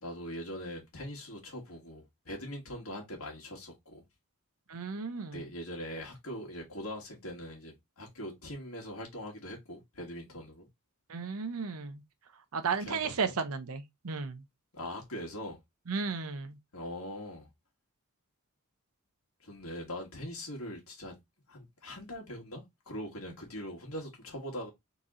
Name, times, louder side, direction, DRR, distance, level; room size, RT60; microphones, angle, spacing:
voice 1, 0.0-4.0 5.3-10.7 12.8-13.3 14.7-15.6 16.7-17.5 19.4-21.2 21.5-24.7, equal, 70° left, 1.8 m, -42 dB
voice 2, 4.7-5.4 11.1-12.0 12.5-14.4 15.9-16.6, right 5 dB, 75° right, 0.7 m, -34 dB
4.0 x 3.0 x 3.7 m
head